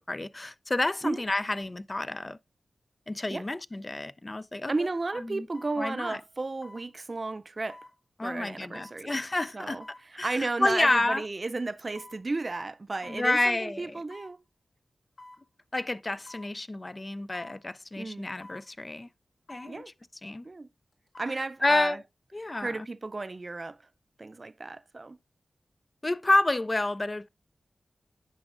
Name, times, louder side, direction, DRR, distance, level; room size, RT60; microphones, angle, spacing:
voice 1, 0.0-2.4 3.1-4.7 5.2-5.5 5.8-6.2 8.2-9.8 10.2-11.2 13.1-14.0 15.7-19.1 19.5-19.8 20.2-20.5 21.6-22.0 22.3-22.8 26.0-27.3, left 2 dB, 35° left, 0.3 m, -29 dB
sound 1, 4.4-4.5 5.5-5.8 6.6-6.9 7.7-7.9 8.7-9.0 9.8-10.0 10.9-11.1 12.0-12.2 13.0-13.3 14.1-14.4 15.2-15.4 16.3-16.5 17.3-17.6 18.4-18.7 19.5-19.7 20.9-21.4 21.8-21.9, left 2 dB, 70° left, 1.7 m, -49 dB
voice 2, 4.7-7.8 8.2-9.2 9.5-14.4 18.0-18.3 19.6-19.9 20.4-20.7 21.2-22.0 22.6-23.8 24.2-25.2, right 3 dB, 45° right, 0.4 m, -33 dB
9.6 x 5.0 x 2.4 m
cardioid pair, 45°, 0 cm